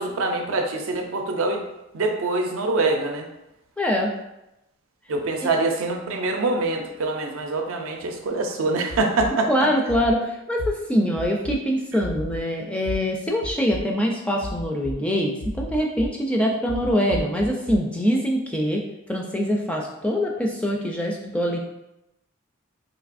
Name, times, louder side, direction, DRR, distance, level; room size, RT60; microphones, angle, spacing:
voice 1, 0.0-1.6 1.9-3.3 5.1-9.5, right 2 dB, 75° right, 3 dB, 0.5 m, -24 dB
voice 2, 3.8-4.1 5.4-5.5 9.5-18.8 19.1-21.6, equal, 5° left, 0 dB, 0.3 m, -24 dB
sound 1, 8.9-9.3 9.9-10.1 10.6-10.7 11.2-11.5 12.0-12.4 12.9-13.0 13.4-13.8 14.4-14.9 15.4-16.1 16.7-17.8, left 1 dB, 65° left, 0.5 m, -32 dB
4.1 x 2.9 x 2.5 m, 0.90 s
head